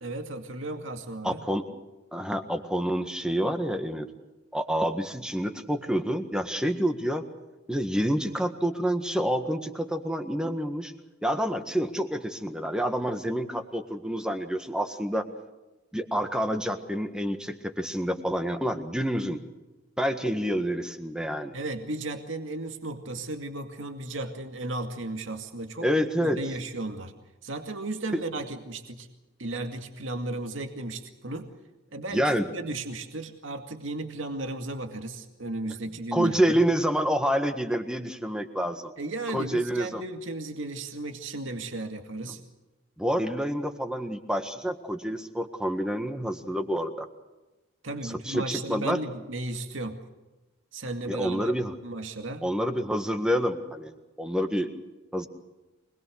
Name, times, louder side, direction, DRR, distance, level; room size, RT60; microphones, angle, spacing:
voice 1, 0.0-1.4 21.5-27.1 27.4-29.1 29.4-31.5 31.9-36.6 39.0-42.4 47.8-50.0 50.7-51.5 51.8-52.4, right 2 dB, 85° right, 5 dB, 2.3 m, -35 dB
voice 2, 1.2-1.7 2.1-4.1 4.5-7.2 7.7-10.9 11.2-15.2 15.9-19.4 20.0-21.5 25.8-26.4 28.1-28.2 32.1-32.5 36.1-38.9 39.3-40.0 43.0-47.1 48.0-49.0 51.1-51.7 52.4-54.7 55.1-55.3, equal, 5° right, 6 dB, 1.7 m, -28 dB
25.5 x 21.0 x 6.4 m, 1.1 s
head